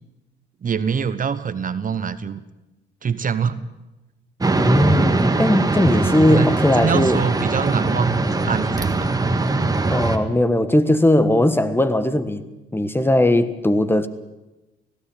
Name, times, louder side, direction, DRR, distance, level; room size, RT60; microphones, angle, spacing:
voice 1, 0.6-2.4 3.0-3.7 6.3-9.1, right 6 dB, 40° right, 1.1 m, -24 dB
sound 1, 4.4-10.2, right 2 dB, 20° right, 1.9 m, -21 dB
voice 2, 4.6-7.2 9.9-12.4 12.7-14.1, left 1 dB, 10° left, 1.4 m, -18 dB
17.5 x 16.5 x 9.0 m
cardioid pair, 90°, 20 cm